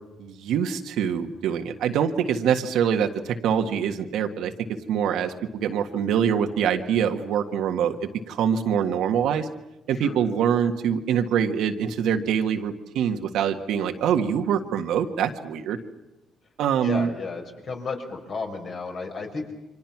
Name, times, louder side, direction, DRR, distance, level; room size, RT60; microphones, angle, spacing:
voice 1, 0.2-4.5 4.9-9.5 9.9-15.8 16.6-17.1, right 8 dB, 85° right, 6 dB, 1.7 m, -24 dB
voice 2, 16.8-19.5, left 4 dB, 55° left, 2 dB, 5.3 m, -33 dB
29.0 x 25.0 x 6.1 m, 0.94 s
cardioid pair, 90°, 0 cm